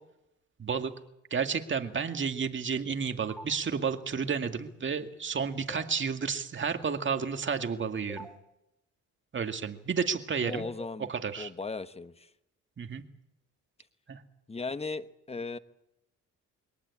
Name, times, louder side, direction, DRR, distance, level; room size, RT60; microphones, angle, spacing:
voice 1, 0.6-0.9 1.3-8.3 9.3-10.7 11.1-11.5 12.8-13.0 14.1-14.2, right 6 dB, 40° right, 6 dB, 2.1 m, -31 dB
sound 1, 3.3-3.4 5.7-5.8 8.1-8.3 10.5-10.9, right 1 dB, 5° left, 3.0 m, -43 dB
voice 2, 10.4-11.1 11.4-12.3 14.5-15.6, left 3 dB, 20° left, 12 dB, 1.2 m, -37 dB
23.0 x 18.0 x 8.6 m, 0.83 s
cardioid pair, 90°, 30 cm